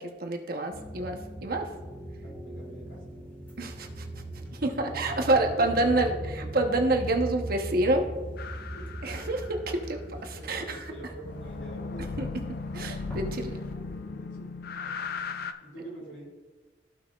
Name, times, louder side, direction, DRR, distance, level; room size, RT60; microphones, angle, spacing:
voice 1, 0.0-1.7 3.6-4.1 4.5-8.1 9.0-10.8 12.2-12.3 12.7-13.6, right 2 dB, 55° right, 4 dB, 1.0 m, -28 dB
sound 1, 0.7-14.0, right 1 dB, 10° left, 1.7 m, -40 dB
voice 2, 2.1-3.3 4.8-6.3 8.7-8.9 10.3-12.3 12.8-12.9 13.9-14.5 15.6-16.3, right 1 dB, 90° left, -3 dB, 2.8 m, -45 dB
sound 2, 8.4-9.8 11.2-15.5, left 4 dB, 55° left, 0.4 m, -37 dB
14.5 x 5.7 x 2.4 m, 1.3 s
head